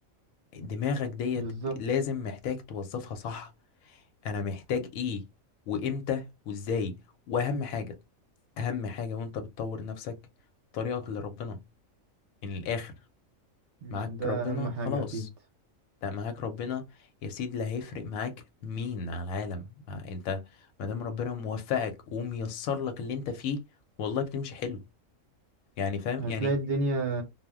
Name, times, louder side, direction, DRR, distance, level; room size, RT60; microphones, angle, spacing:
voice 1, 0.5-1.5 1.8-3.5 4.2-5.2 5.7-6.9 7.3-7.9 8.6-10.2 10.7-11.6 12.4-12.9 13.9-15.3 16.0-16.8 17.2-18.3 18.6-20.4 20.8-23.6 24.0-24.8 25.8-26.5, left 6 dB, 90° left, 1.0 m, -32 dB
voice 2, 1.4-1.7 13.8-15.3 26.2-27.2, right 2 dB, 55° right, 0.8 m, -31 dB
2.3 x 2.0 x 3.4 m
omnidirectional pair, 1.4 m